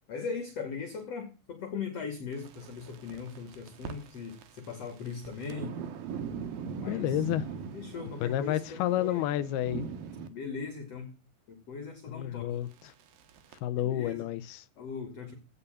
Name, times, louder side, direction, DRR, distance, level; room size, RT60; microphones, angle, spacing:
voice 1, 0.1-5.8 6.7-7.2 7.7-9.2 10.3-11.1 11.5-12.5 13.7-14.3 14.8-15.3, left 5 dB, 40° left, 3.0 m, -39 dB
sound 1, 2.3-10.3 12.7-13.6, right 6 dB, 60° right, 2.9 m, -41 dB
voice 2, 6.9-7.4 8.2-9.8 12.1-12.9 13.6-14.6, left 13 dB, 80° left, 2.3 m, -30 dB
17.0 x 7.0 x 6.8 m
omnidirectional pair, 5.3 m